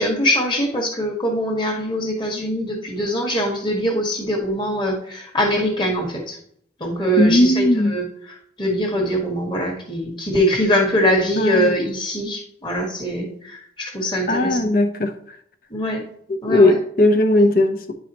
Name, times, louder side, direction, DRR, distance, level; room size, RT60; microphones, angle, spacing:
voice 1, 0.0-6.4 6.8-8.1 8.6-14.7 15.7-16.0 16.4-16.8, equal, 25° left, 1.6 m, -22 dB
voice 2, 7.2-8.0 11.4-11.7 14.3-15.1 16.5-17.9, left 1 dB, 50° left, 0.8 m, -17 dB
10.0 x 4.8 x 2.9 m
head